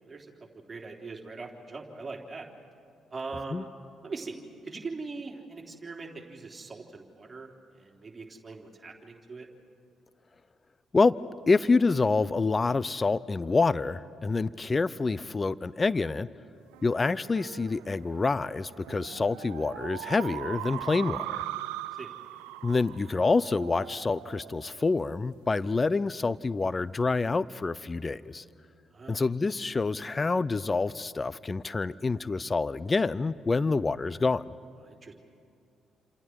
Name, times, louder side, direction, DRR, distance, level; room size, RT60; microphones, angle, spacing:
voice 1, 0.0-2.5 3.1-3.7 4.0-4.4 4.6-9.5 22.0-22.1 28.9-29.2 34.8-35.1, right 3 dB, 30° right, 0 dB, 3.8 m, -41 dB
voice 2, 11.5-16.3 16.8-21.4 22.6-28.4 29.1-34.5, left 3 dB, 30° left, 19 dB, 0.7 m, -27 dB
sound 1, 16.7-25.6, right 15 dB, 80° right, 0.5 m, -40 dB
29.0 x 27.0 x 4.8 m, 2.4 s
hypercardioid pair, 45°, 0 cm